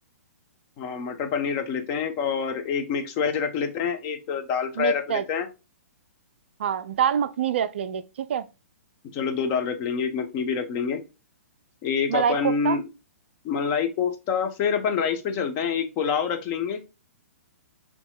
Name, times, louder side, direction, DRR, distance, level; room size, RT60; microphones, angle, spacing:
voice 1, 0.8-5.5 9.1-11.0 11.8-12.8 13.4-16.8, left 6 dB, 30° left, 0.8 m, -26 dB
voice 2, 4.8-5.2 6.6-8.4 12.1-12.8, right 8 dB, 50° right, 0.3 m, -26 dB
7.0 x 2.9 x 2.2 m
figure-of-eight pair, 115°, 8 cm